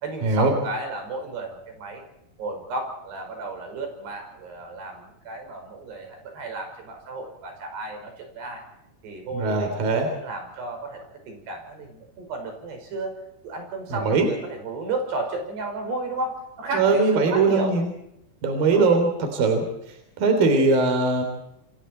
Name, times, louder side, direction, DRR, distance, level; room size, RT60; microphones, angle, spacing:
voice 1, 0.0-2.0 2.4-8.6 9.0-13.2 13.4-17.8 18.5-19.0, right 2 dB, 80° right, 4 dB, 7.3 m, -33 dB
voice 2, 9.3-10.1 13.9-14.3 16.7-17.9 18.4-19.7 20.2-21.2, right 3 dB, 60° right, 5 dB, 5.1 m, -20 dB
28.0 x 24.0 x 4.5 m, 0.81 s
omnidirectional pair, 4.7 m